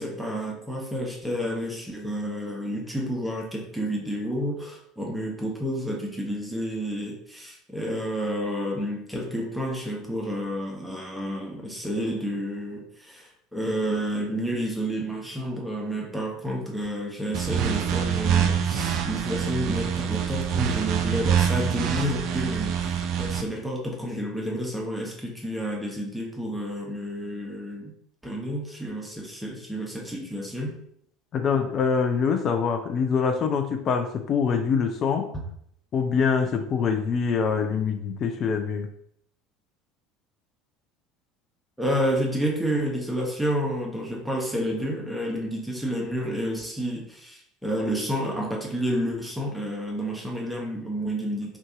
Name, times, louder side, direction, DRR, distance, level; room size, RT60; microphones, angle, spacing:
voice 1, 0.0-27.9 28.2-30.8 35.3-35.4 41.8-51.6, equal, ahead, -1 dB, 0.8 m, -30 dB
sound 1, 17.3-23.4, right 8 dB, 55° right, 0.3 m, -25 dB
voice 2, 31.3-35.3 35.9-38.9, left 6 dB, 40° left, 6 dB, 0.4 m, -24 dB
2.6 x 2.4 x 3.7 m, 0.70 s
figure-of-eight pair, 65°, 0 cm